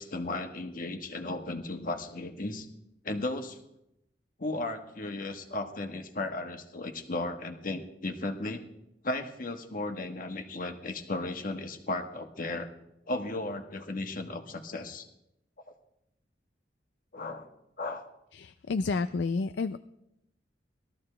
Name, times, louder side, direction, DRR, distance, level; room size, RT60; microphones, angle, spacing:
voice 1, 0.0-2.7 3.0-3.6 4.4-8.6 9.0-12.7 13.1-15.1 17.1-17.5 17.8-18.1, left 2 dB, 50° left, 5 dB, 1.3 m, -35 dB
voice 2, 18.3-19.8, left 4 dB, 80° left, 10 dB, 0.4 m, -30 dB
20.5 x 13.5 x 3.3 m, 0.84 s
head